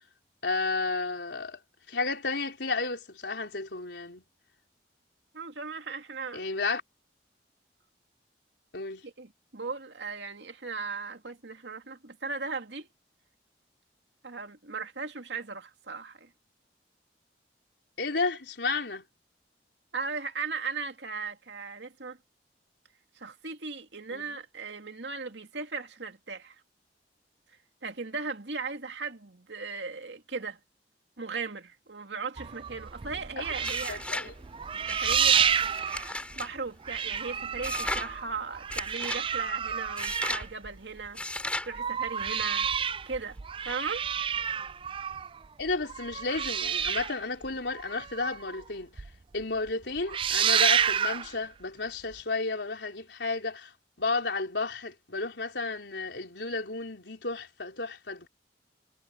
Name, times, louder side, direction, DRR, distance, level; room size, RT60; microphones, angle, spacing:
voice 1, 0.4-1.6 1.9-4.2 6.3-6.8 8.7-9.0 18.0-19.1 24.1-24.4 33.4-33.5 33.9-34.3 45.6-49.0 49.3-58.3, left 3 dB, 80° left, 3.8 m, -32 dB
voice 2, 5.3-6.4 9.0-12.9 14.2-16.3 19.9-22.2 23.2-26.6 27.8-30.6 31.2-34.0 34.7-35.4 36.4-41.2 41.6-42.7 43.1-43.4 43.7-44.0, right 4 dB, 85° right, 2.5 m, -37 dB
sound 1, 32.4-36.6 36.8-41.1 41.5-48.6 49.0-49.1 49.4-49.7 50.0-51.3 52.1-52.2, right 8 dB, 30° right, 0.4 m, -30 dB
sound 2, 33.6-34.3 34.9-36.5 37.6-38.1 38.7-39.2 40.0-40.5 41.2-41.7, left 1 dB, 5° left, 4.4 m, -35 dB
head